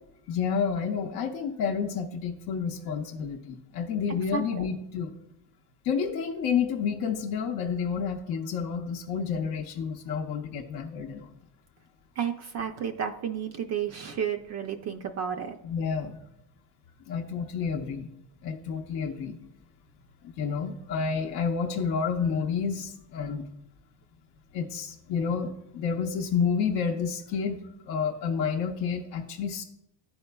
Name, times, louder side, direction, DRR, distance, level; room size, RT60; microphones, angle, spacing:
voice 1, 0.3-5.1 5.8-11.3 15.6-16.2 17.0-18.1 18.4-19.4 20.2-23.5 24.5-29.6, left 6 dB, 55° left, 1 dB, 0.6 m, -30 dB
voice 2, 4.3-4.7 12.2-15.6, right 8 dB, 40° right, 5 dB, 0.4 m, -32 dB
11.5 x 4.3 x 2.2 m, 0.83 s
cardioid pair, 120°, 43 cm